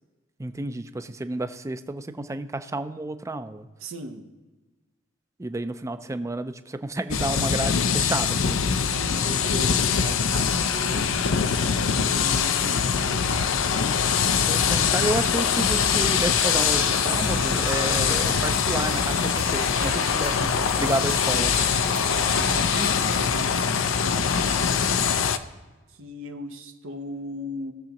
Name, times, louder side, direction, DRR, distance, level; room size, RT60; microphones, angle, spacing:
voice 1, 0.4-3.7 5.4-8.8 14.5-20.5 20.8-21.5, right 2 dB, 15° right, 10 dB, 0.4 m, -31 dB
voice 2, 3.8-4.3 8.7-11.2 11.5-13.7 22.3-25.1 25.9-27.7, right 1 dB, 90° right, 4 dB, 0.9 m, -37 dB
sound 1, 7.1-25.4, left 6 dB, 75° left, 0.5 m, -23 dB
sound 2, 15.7-23.0, right 4 dB, 55° right, 0.8 m, -37 dB
18.0 x 6.8 x 2.9 m, 1.2 s
head